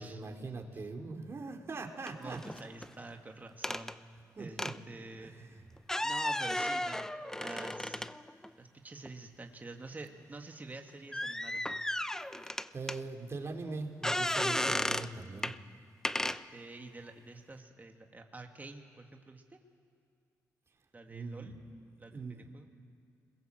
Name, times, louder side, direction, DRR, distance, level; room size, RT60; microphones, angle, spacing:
voice 1, 0.0-2.4 4.4-4.8 5.2-5.6 12.4-15.5 21.1-21.6 22.1-22.5, right 3 dB, 45° right, 3 dB, 3.8 m, -41 dB
sound 1, 2.1-2.9 3.6-3.9 4.6-4.8 5.8-8.5 9.1-9.2 11.1-13.0 14.0-15.1 15.4-15.6 16.0-16.4, left 1 dB, 10° left, 0.8 m, -34 dB
voice 2, 2.2-3.9 4.4-5.3 6.0-7.1 7.4-8.1 8.6-11.7 16.2-19.6 20.9-21.6 22.0-22.7, right 2 dB, 25° right, 3 dB, 2.3 m, -48 dB
28.0 x 22.0 x 7.8 m, 2.4 s
cardioid pair, 65°, 6 cm